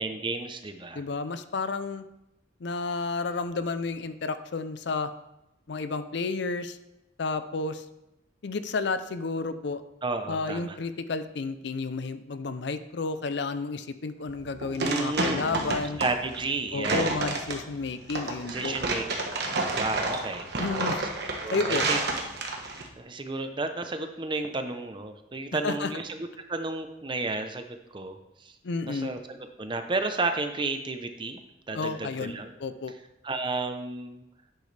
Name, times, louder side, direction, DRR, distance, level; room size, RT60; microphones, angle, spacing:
voice 1, 0.0-1.0 10.0-10.8 14.8-17.2 18.5-19.0 19.4-20.5 21.4-22.0 23.0-28.5 28.8-31.4 31.7-32.5 33.2-34.2, right 3 dB, 25° right, 7 dB, 0.7 m, -32 dB
voice 2, 0.9-2.0 2.6-5.1 5.7-6.8 7.2-7.8 8.4-9.8 10.3-16.0 16.7-18.8 20.6-21.0 21.5-21.8 25.6-25.9 28.6-29.1 31.7-32.3 32.6-32.9, left 4 dB, 60° left, 12 dB, 0.5 m, -31 dB
sound 1, 14.3-22.9, right 3 dB, 55° right, 1.3 m, -30 dB
10.5 x 8.2 x 3.3 m, 0.91 s
head